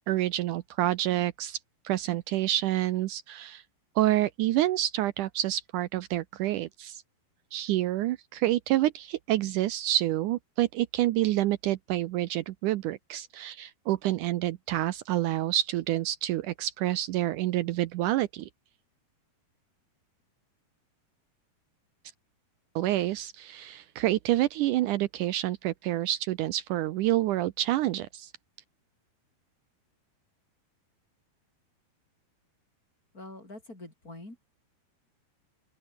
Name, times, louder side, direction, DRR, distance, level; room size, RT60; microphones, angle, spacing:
voice 1, 0.1-1.6 1.8-3.6 3.9-7.0 7.5-18.5 22.7-28.3, right 14 dB, 80° right, 1.8 m, -28 dB
voice 2, 33.1-34.4, left 2 dB, 20° left, 7.2 m, -45 dB
open air
omnidirectional pair, 4.5 m